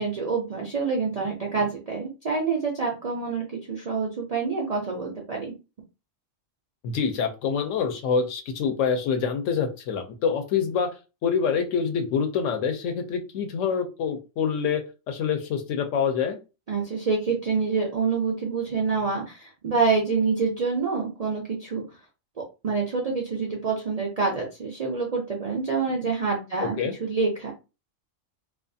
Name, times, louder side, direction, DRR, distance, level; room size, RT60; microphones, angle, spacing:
voice 1, 0.0-5.5 16.7-21.8 22.6-27.5, right 4 dB, 60° right, -1 dB, 0.4 m, -27 dB
voice 2, 6.8-10.9 11.2-16.4 26.8-26.9, left 6 dB, 75° left, 5 dB, 0.9 m, -26 dB
2.4 x 2.3 x 2.6 m, 0.29 s
omnidirectional pair, 1.4 m